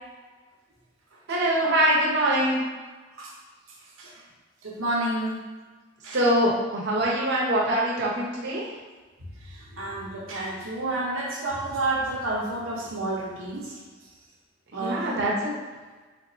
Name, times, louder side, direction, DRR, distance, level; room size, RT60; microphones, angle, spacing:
voice 1, 1.3-2.6 6.1-8.7 14.8-15.5, right 1 dB, 55° right, -5 dB, 0.9 m, -23 dB
voice 2, 4.6-5.4 6.0-6.2 9.5-13.7 14.7-15.1, right 2 dB, 85° right, -3 dB, 0.9 m, -30 dB
3.8 x 3.0 x 2.7 m, 1.3 s
head